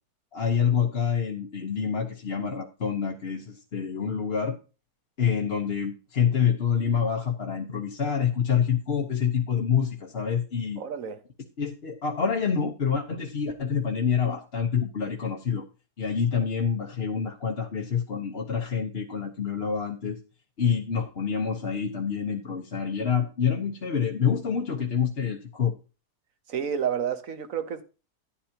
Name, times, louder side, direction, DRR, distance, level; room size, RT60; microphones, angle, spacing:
voice 1, 0.3-4.6 5.2-10.8 11.6-15.6 16.0-20.2 20.6-25.7, left 7 dB, 45° left, 1.2 m, -27 dB
voice 2, 10.8-11.2 26.5-27.8, right 8 dB, 60° right, 1.4 m, -30 dB
11.5 x 11.0 x 2.9 m
omnidirectional pair, 1.7 m